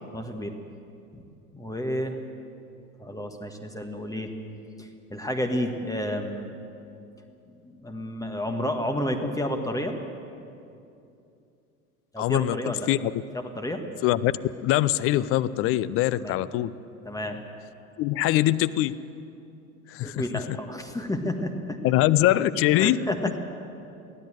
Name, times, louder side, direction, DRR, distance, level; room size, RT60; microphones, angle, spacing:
voice 1, 0.1-0.5 1.1-1.2 1.5-2.2 3.0-4.3 4.8-6.5 7.6-10.0 12.1-12.9 13.3-13.8 16.2-16.4 17.0-17.4 20.0-21.9 22.7-23.4, left 1 dB, 10° left, 4 dB, 1.7 m, -31 dB
voice 2, 12.2-13.1 14.0-14.3 14.6-16.7 18.0-18.9 19.9-20.6 21.8-23.0, left 14 dB, 30° left, 16 dB, 0.6 m, -23 dB
23.5 x 16.0 x 7.8 m, 2.6 s
figure-of-eight pair, 80°, 44 cm